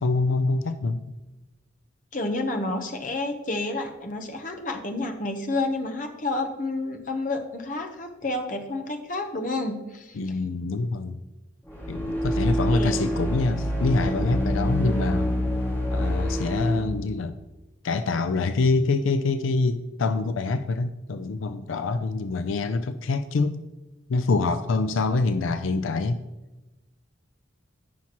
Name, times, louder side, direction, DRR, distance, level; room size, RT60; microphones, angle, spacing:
voice 1, 0.0-1.0 10.2-11.2 11.9-15.3 15.9-17.4 17.8-23.6 24.1-26.2, left 3 dB, 85° left, 11 dB, 0.5 m, -25 dB
voice 2, 2.1-10.2 12.7-13.1, left 2 dB, 40° left, 5 dB, 0.9 m, -30 dB
sound 1, 11.6-16.9, equal, 10° left, 2.0 m, -26 dB
15.5 x 5.8 x 3.0 m, 1.0 s
head